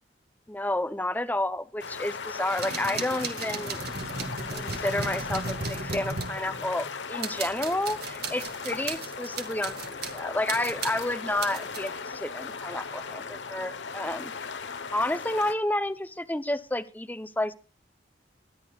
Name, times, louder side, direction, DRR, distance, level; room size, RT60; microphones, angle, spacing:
voice 1, 0.5-3.8 4.5-14.3 14.9-17.5, left 1 dB, 10° left, 12 dB, 0.7 m, -30 dB
sound 1, 1.8-15.5, left 5 dB, 85° left, 1.1 m, -37 dB
sound 2, 2.5-6.9 7.2-10.2 10.5-11.9, right 4 dB, 60° right, 2.1 m, -36 dB
24.0 x 11.0 x 2.4 m, 0.33 s
head